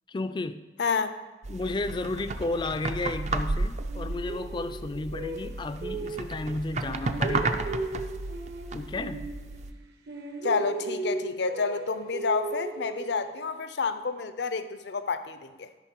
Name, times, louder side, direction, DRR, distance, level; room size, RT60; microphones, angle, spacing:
voice 1, 0.1-0.6 1.5-7.7 8.7-9.3, left 2 dB, 25° left, 11 dB, 0.3 m, -33 dB
voice 2, 0.8-1.1 10.4-15.7, left 4 dB, 75° left, 11 dB, 0.6 m, -29 dB
sound 1, 1.4-9.7, right 3 dB, 40° right, 0.4 m, -33 dB
sound 2, 3.8-6.5 6.9-9.8 10.1-13.6, right 3 dB, 65° right, 1.1 m, -36 dB
12.0 x 5.3 x 4.5 m, 1.2 s
head